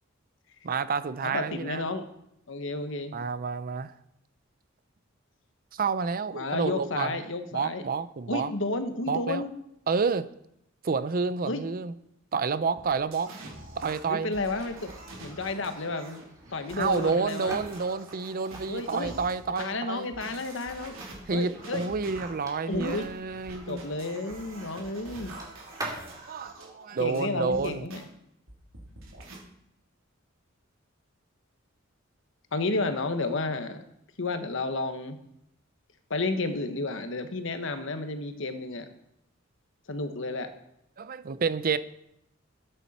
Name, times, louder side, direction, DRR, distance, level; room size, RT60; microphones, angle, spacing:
voice 1, 0.6-1.9 3.1-3.9 5.7-7.2 7.5-8.5 9.1-9.4 9.9-10.3 10.8-11.9 12.3-13.3 13.8-14.3 16.7-20.1 21.3-23.8 26.3-27.9 41.0-41.8, right 5 dB, 45° right, 0.5 m, -29 dB
voice 2, 1.2-2.1 2.5-3.1 6.3-7.8 8.3-9.5 11.5-11.6 14.1-14.9 15.2-16.2 16.5-17.6 18.7-19.1 19.6-21.0 21.3-21.9 22.7-23.1 23.7-25.3 27.0-28.1 32.5-33.8 34.2-35.2 36.1-38.9 39.9-40.5, left 3 dB, 70° left, 1.2 m, -31 dB
sound 1, 12.8-19.6 20.1-28.0 28.5-29.4, right 2 dB, 90° right, 3.2 m, -45 dB
sound 2, 14.4-26.2, right 2 dB, 20° right, 2.4 m, -46 dB
12.5 x 9.1 x 4.2 m
head